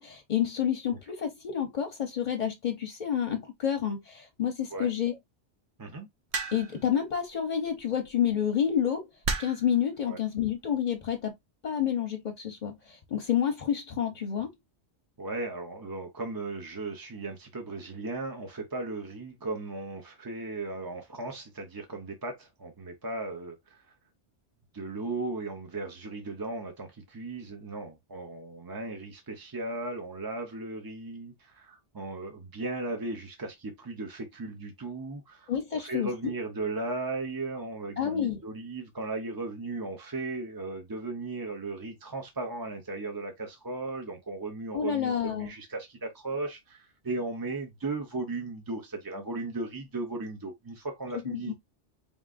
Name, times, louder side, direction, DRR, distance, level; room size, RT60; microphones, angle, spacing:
voice 1, 0.0-5.2 6.5-9.1 9.4-11.3 11.6-14.5 35.5-36.3 38.0-38.4 44.7-45.5 51.3-51.5, left 9 dB, 45° left, 0.7 m, -29 dB
sound 1, 6.3-6.8 8.1-8.3 9.2-9.7 10.7-11.0, right 4 dB, 70° right, 1.0 m, -32 dB
voice 2, 15.2-23.8 24.7-51.5, right 2 dB, 30° right, 0.4 m, -36 dB
4.2 x 3.6 x 2.4 m
omnidirectional pair, 1.2 m